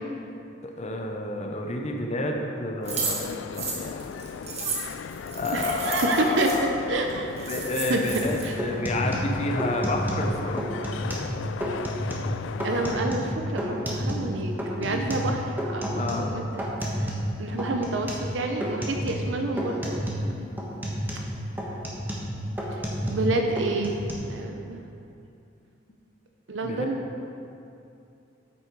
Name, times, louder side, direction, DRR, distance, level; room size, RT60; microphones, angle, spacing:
voice 1, 0.6-3.3 3.6-4.2 5.3-6.7 7.5-10.9 14.8-15.1 15.9-16.3 26.6-26.9, left 2 dB, 35° left, 2 dB, 0.8 m, -30 dB
sound 1, 2.8-13.0, left 6 dB, 75° left, 0.3 m, -37 dB
sound 2, 2.9-6.6 7.1-7.2 7.4-8.4, right 4 dB, 35° right, 1.6 m, -33 dB
voice 2, 5.5-6.5 6.9-7.5 7.9-8.0 8.4-8.6 12.6-16.7 17.0-17.1 17.4-20.5 22.7-24.9 26.5-27.0, right 2 dB, 75° right, 3 dB, 0.7 m, -29 dB
sound 3, 8.1-8.3 8.6-10.3 10.6-11.3 11.6-12.3 12.6-14.3 14.6-17.3 17.6-18.3 18.6-19.3 19.6-20.3 20.6-23.3 23.6-24.1, equal, 10° right, 1.3 m, -30 dB
8.5 x 7.7 x 4.7 m, 2.6 s
head